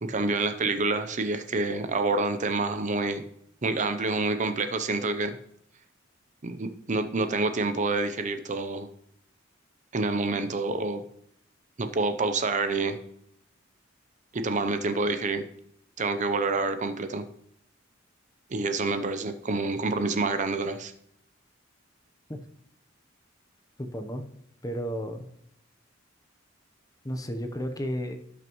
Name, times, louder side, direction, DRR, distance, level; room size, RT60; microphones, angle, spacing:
voice 1, 0.0-3.2 3.6-5.4 6.4-8.9 9.9-11.0 11.8-13.0 14.3-15.4 16.0-17.2 18.5-20.9, right 3 dB, 40° right, 9 dB, 0.6 m, -27 dB
voice 2, 23.8-24.2 24.6-25.3 27.0-28.2, equal, 20° left, 6 dB, 0.8 m, -32 dB
17.5 x 6.0 x 3.1 m, 0.74 s
head